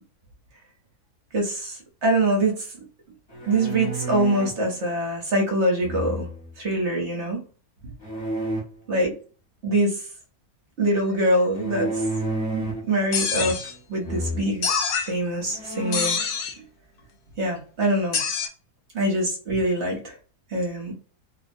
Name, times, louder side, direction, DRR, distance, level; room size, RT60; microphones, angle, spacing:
voice 1, 1.3-2.5 3.5-6.3 6.6-7.4 8.9-9.1 9.6-10.0 10.8-12.0 12.5-13.6 13.9-14.7 15.0-16.2 17.4-18.2 18.9-20.2 20.5-20.9, right 1 dB, 55° right, 0 dB, 1.1 m, -24 dB
sound 1, 3.3-4.6 5.8-6.5 8.0-8.6 11.5-12.9 13.3-13.8 14.0-14.4 15.1-15.2 15.5-16.2, right 1 dB, 20° left, 0.8 m, -30 dB
sound 2, 13.1-13.7 14.6-15.1 15.9-16.5 18.1-18.5, left 5 dB, 70° left, 1.0 m, -25 dB
2.8 x 2.1 x 2.5 m, 0.38 s
omnidirectional pair, 1.6 m